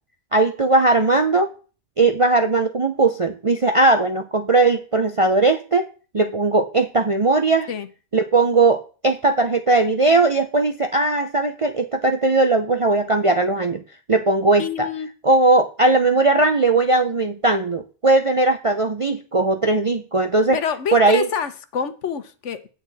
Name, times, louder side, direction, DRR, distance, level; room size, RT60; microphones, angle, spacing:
voice 1, 0.3-1.5 2.0-5.9 6.1-7.7 8.1-13.8 14.1-14.9 15.2-20.6 20.9-21.3, right 3 dB, 40° right, 0.5 m, -18 dB
voice 2, 14.6-15.1 20.5-22.7, left 7 dB, 70° left, 1.2 m, -27 dB
8.6 x 8.5 x 4.1 m
omnidirectional pair, 1.3 m